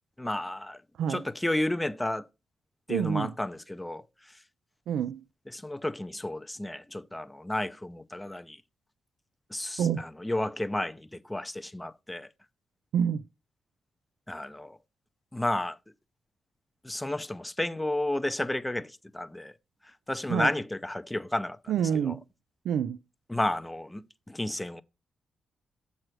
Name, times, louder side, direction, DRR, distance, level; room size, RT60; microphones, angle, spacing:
voice 1, 0.2-0.8 1.1-2.3 2.9-4.4 5.5-8.6 9.5-12.3 14.3-14.8 15.3-15.8 16.8-19.5 19.8-22.2 23.3-24.8, left 1 dB, 10° left, 0.4 m, -32 dB
voice 2, 2.9-3.3 4.9-5.2 9.8-10.1 12.9-13.2 20.3-20.5 21.7-22.2 22.6-23.0, right 8 dB, 85° right, 0.3 m, -27 dB
7.6 x 3.2 x 6.0 m
cardioid pair, 140°, 0 cm